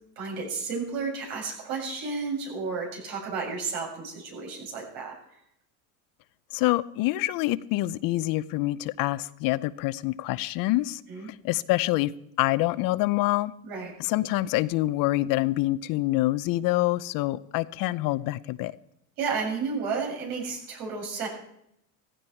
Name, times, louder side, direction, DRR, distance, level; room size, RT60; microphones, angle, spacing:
voice 1, 0.2-5.1 11.1-11.3 13.6-14.0 19.2-21.3, right 4 dB, 75° right, 0 dB, 7.2 m, -32 dB
voice 2, 6.5-11.0 11.3-12.1 12.4-13.5 14.0-18.7, left 17 dB, 55° left, 16 dB, 0.7 m, -26 dB
16.0 x 15.5 x 4.5 m, 0.76 s
supercardioid pair, 115°, 42 cm